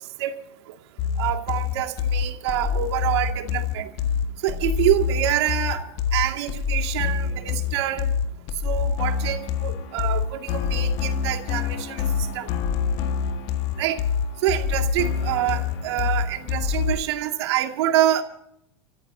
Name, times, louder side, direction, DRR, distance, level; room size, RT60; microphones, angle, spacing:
sound 1, 1.0-17.0, left 7 dB, 50° left, 1.7 m, -26 dB
voice 1, 1.2-3.9 4.4-8.1 8.6-12.1 12.3-12.5 13.8-14.0 14.4-18.2, right 12 dB, 75° right, 4 dB, 2.4 m, -26 dB
29.5 x 14.5 x 2.8 m, 0.74 s
supercardioid pair, 130°, 14 cm